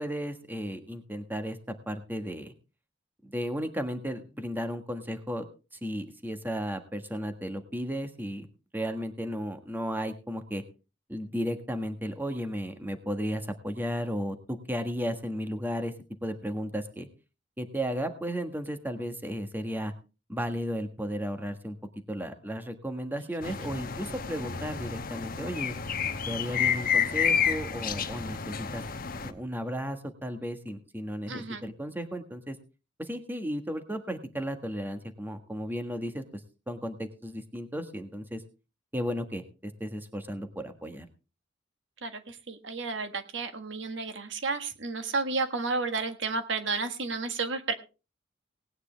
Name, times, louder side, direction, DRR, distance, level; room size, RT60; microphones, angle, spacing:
voice 1, 0.0-1.6 1.9-2.5 3.2-5.5 5.7-8.5 8.7-10.6 11.1-15.9 16.2-17.1 17.6-19.9 20.3-21.8 22.1-25.8 26.3-28.8 29.2-32.6 33.0-36.4 36.7-38.4 38.9-41.1, equal, 10° right, 7 dB, 1.5 m, -34 dB
sound 1, 23.4-29.3, left 7 dB, 50° left, 1.1 m, -30 dB
voice 2, 31.3-31.6 42.0-47.7, right 4 dB, 70° right, 8 dB, 1.6 m, -32 dB
19.0 x 9.6 x 3.4 m, 0.32 s
head